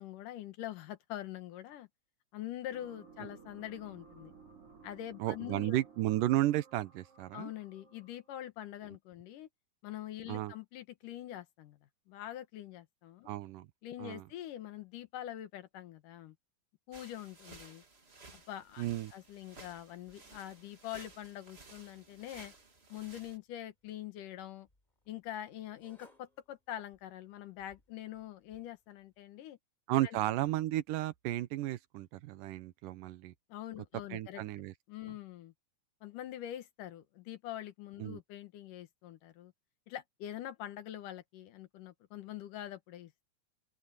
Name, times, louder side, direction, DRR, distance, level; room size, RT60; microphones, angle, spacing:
voice 1, 0.0-1.9 2.3-4.3 4.8-5.8 7.3-9.5 9.8-11.8 12.1-13.3 13.8-16.4 16.9-17.8 18.3-18.9 19.1-22.5 22.9-24.7 25.1-29.6 30.0-30.2 33.5-34.4 34.9-35.5 36.0-39.5 39.9-43.2, left 12 dB, 80° left, 2.9 m, -44 dB
sound 1, 2.7-8.3, right 5 dB, 45° right, 3.9 m, -57 dB
voice 2, 5.2-7.5 10.3-10.5 13.3-13.7 14.0-14.3 18.8-19.1 29.9-33.3 34.1-34.7 38.0-38.2, right 14 dB, 85° right, 2.5 m, -33 dB
sound 2, 16.9-23.4, right 3 dB, 20° right, 2.0 m, -56 dB
sound 3, 21.5-29.2, left 2 dB, 15° left, 4.1 m, -71 dB
open air
omnidirectional pair, 3.7 m